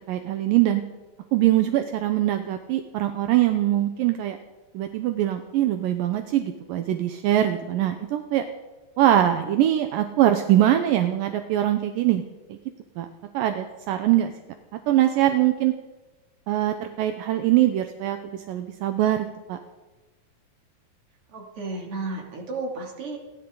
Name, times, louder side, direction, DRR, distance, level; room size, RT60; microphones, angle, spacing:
voice 1, 0.1-0.8 1.3-4.4 4.7-8.5 9.0-12.2 12.5-12.6 13.0-13.1 13.3-14.3 14.9-15.7 16.5-19.6, right 13 dB, 80° right, 7 dB, 2.4 m, -22 dB
voice 2, 21.3-23.2, right 3 dB, 40° right, 0 dB, 3.5 m, -33 dB
29.0 x 12.5 x 3.9 m, 1.1 s
omnidirectional pair, 4.1 m